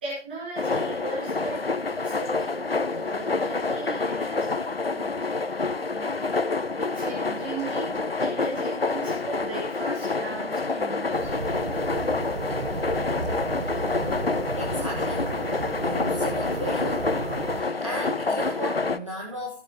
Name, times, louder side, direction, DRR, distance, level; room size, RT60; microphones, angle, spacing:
voice 1, 0.0-1.6 1.9-5.1 5.9-6.3 6.9-11.4, right 3 dB, 10° right, -7 dB, 2.3 m, -37 dB
sound 1, 0.6-19.0, left 3 dB, 55° left, 0.6 m, -28 dB
sound 2, 11.1-17.6, right 2 dB, 75° right, 1.6 m, -32 dB
voice 2, 14.6-15.2 15.8-17.1 17.5-19.6, equal, 25° right, -1 dB, 1.3 m, -35 dB
16.0 x 8.9 x 2.9 m, 0.35 s
figure-of-eight pair, 165°, 36 cm